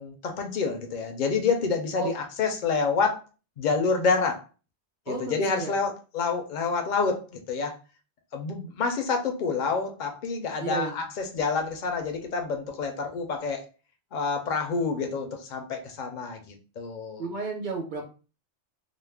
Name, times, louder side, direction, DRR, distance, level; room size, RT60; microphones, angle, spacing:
voice 1, 0.0-3.2 3.6-4.4 5.1-7.8 8.3-13.6 14.1-17.2, left 4 dB, 55° left, 4 dB, 0.6 m, -28 dB
voice 2, 5.1-5.7 10.6-11.0 17.2-18.1, right 4 dB, 45° right, 2 dB, 0.8 m, -32 dB
2.4 x 2.0 x 3.3 m, 0.35 s
omnidirectional pair, 1.2 m